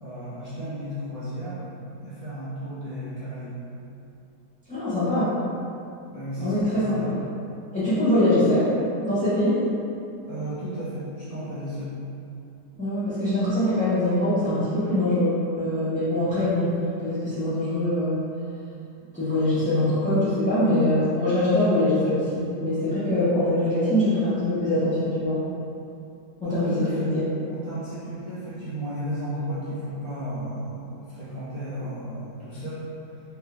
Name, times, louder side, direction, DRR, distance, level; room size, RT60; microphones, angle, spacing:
voice 1, 0.0-1.7 2.0-3.6 6.1-7.1 10.2-11.9 26.4-27.1 27.5-32.8, equal, 50° right, -12 dB, 0.4 m, -34 dB
voice 2, 4.7-5.3 6.4-7.2 7.7-8.7 9.0-9.6 12.8-18.2 19.1-25.4 26.4-27.3, left 1 dB, 5° left, -16 dB, 0.6 m, -23 dB
4.4 x 2.9 x 3.4 m, 2.6 s
omnidirectional pair, 2.0 m